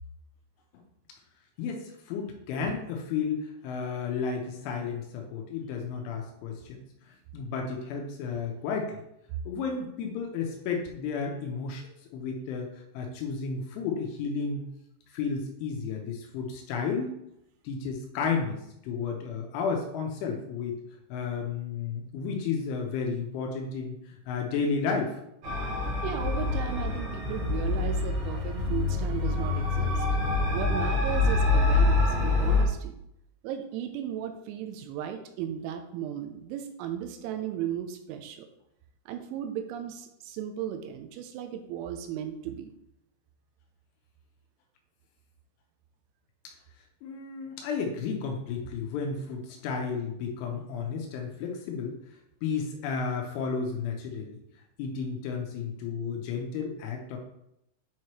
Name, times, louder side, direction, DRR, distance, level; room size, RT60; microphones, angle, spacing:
voice 1, 1.6-9.0 9.5-12.7 12.9-14.6 15.1-17.2 17.6-20.8 21.1-25.1 47.0-52.0 52.4-54.3 54.8-57.2, left 5 dB, 85° left, 2 dB, 3.2 m, -32 dB
sound 1, 25.4-32.6, left 3 dB, 65° right, 2.0 m, -26 dB
voice 2, 26.0-30.1 30.5-33.0 33.4-38.5 39.1-42.7, right 10 dB, 80° right, 6 dB, 2.9 m, -36 dB
8.3 x 3.1 x 4.5 m, 0.80 s
omnidirectional pair, 5.6 m